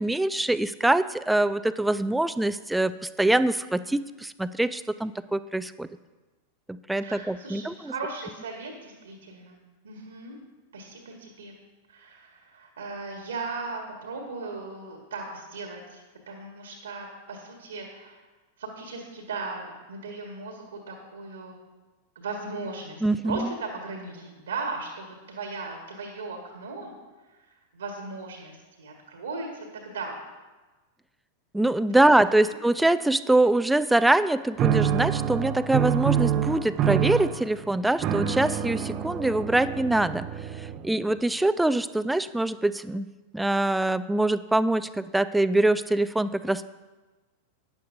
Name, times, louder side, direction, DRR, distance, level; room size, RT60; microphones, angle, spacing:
voice 1, 0.0-5.9 6.7-7.9 23.0-23.5 31.5-40.3 40.6-43.1 43.3-46.7, right 2 dB, 5° right, 14 dB, 0.4 m, -24 dB
voice 2, 7.0-9.6 9.8-10.4 10.7-11.5 11.9-18.2 18.6-21.6 22.1-26.9 27.2-27.3 27.7-30.1 32.0-32.1 32.5-32.6, right 3 dB, 70° right, 2 dB, 1.6 m, -37 dB
sound 1, 34.6-41.1, right 9 dB, 35° right, 0.7 m, -27 dB
13.0 x 10.0 x 2.7 m, 1.2 s
figure-of-eight pair, 90°, 0 cm